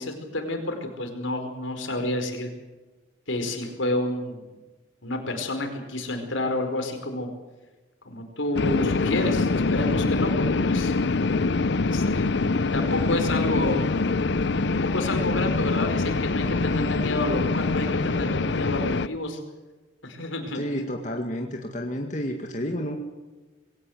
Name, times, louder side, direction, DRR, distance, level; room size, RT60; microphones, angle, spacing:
voice 1, 0.0-2.5 3.3-4.5 5.0-7.3 8.0-10.9 11.8-12.3 12.7-13.8 14.7-19.4 20.0-20.6, left 1 dB, 85° left, 5 dB, 4.8 m, -29 dB
sound 1, 8.6-19.1, left 3 dB, 65° left, 0.6 m, -24 dB
voice 2, 20.5-23.0, equal, 40° left, 2 dB, 2.0 m, -30 dB
22.0 x 17.5 x 8.0 m, 1.2 s
head